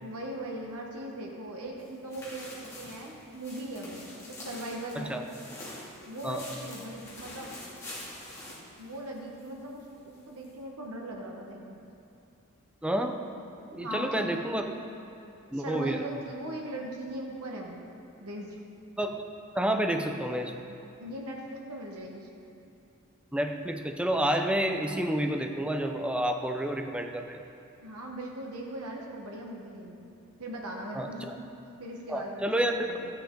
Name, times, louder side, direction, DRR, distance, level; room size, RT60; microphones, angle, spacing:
voice 1, 0.0-5.2 6.1-7.5 8.5-11.8 13.8-14.3 15.5-17.8 18.2-18.6 21.0-22.3 27.8-30.0 30.4-31.4 31.8-32.5 32.8-33.1, right 1 dB, 85° right, -1 dB, 1.2 m, -39 dB
sound 1, 1.8-9.5 9.8-9.9 10.4-10.5, left 1 dB, 15° left, 2.7 m, -45 dB
voice 2, 12.8-13.2 13.7-14.8 15.5-16.0 19.0-19.2 19.6-20.5 23.3-27.4 30.9-31.1 32.1-32.9, right 1 dB, 5° right, 4 dB, 0.5 m, -29 dB
14.0 x 8.7 x 3.8 m, 2.7 s
head